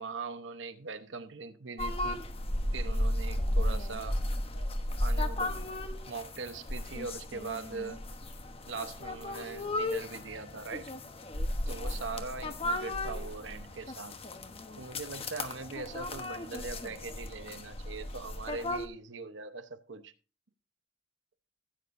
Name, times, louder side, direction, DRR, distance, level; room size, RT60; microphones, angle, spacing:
voice 1, 0.0-2.2 2.7-4.2 5.0-5.5 6.1-8.0 8.7-10.9 11.7-14.2 14.8-20.1, right 4 dB, 75° right, 1.0 m, -41 dB
sound 1, 1.8-18.9, left 1 dB, 30° left, 1.1 m, -34 dB
15.0 x 9.0 x 2.6 m
head